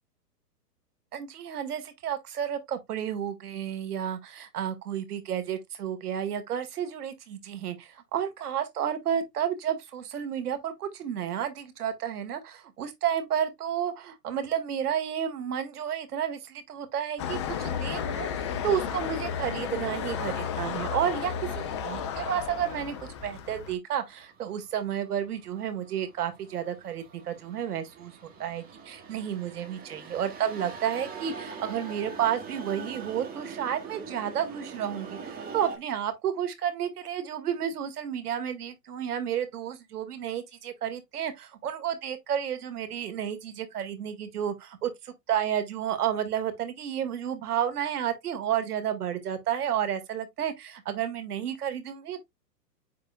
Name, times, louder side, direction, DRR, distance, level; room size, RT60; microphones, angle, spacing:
voice 1, 1.1-21.3 21.8-23.0 23.2-28.1 28.4-52.2, right 9 dB, 65° right, 2.0 m, -31 dB
sound 1, 17.2-23.7, left 7 dB, 20° left, 0.4 m, -33 dB
sound 2, 24.1-35.8, right 5 dB, 15° right, 2.1 m, -43 dB
9.4 x 4.7 x 2.3 m
hypercardioid pair, 125°, 50 cm